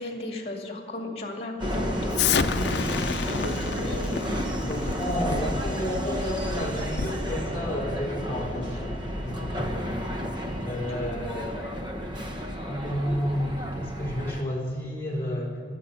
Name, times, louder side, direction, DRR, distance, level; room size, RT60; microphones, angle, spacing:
voice 1, 0.0-2.5 3.3-4.4 4.8-5.0 5.3-5.4 8.5-8.6, left 2 dB, 35° left, 2 dB, 2.4 m, -35 dB
Subway metro underground, 1.6-14.4, equal, 25° right, 1.1 m, -31 dB
Explosion, 2.1-7.3, left 6 dB, 70° left, 0.6 m, -30 dB
voice 2, 4.6-8.9 9.2-10.0 10.6-11.7 12.6-15.7, equal, 15° left, -3 dB, 4.0 m, -31 dB
21.0 x 7.7 x 5.7 m, 2.2 s
head